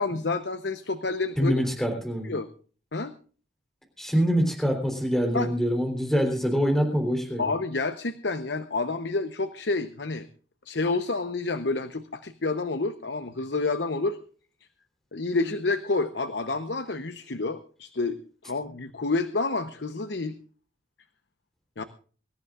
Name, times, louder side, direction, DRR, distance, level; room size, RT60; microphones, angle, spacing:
voice 1, 0.0-1.5 2.2-2.5 2.9-3.1 5.3-5.5 7.4-10.3 10.6-14.2 15.1-20.4 21.8-21.9, left 3 dB, 65° left, 10 dB, 0.9 m, -29 dB
voice 2, 1.4-2.3 4.0-7.5, equal, ahead, 2 dB, 3.7 m, -25 dB
25.0 x 14.0 x 2.5 m, 0.41 s
head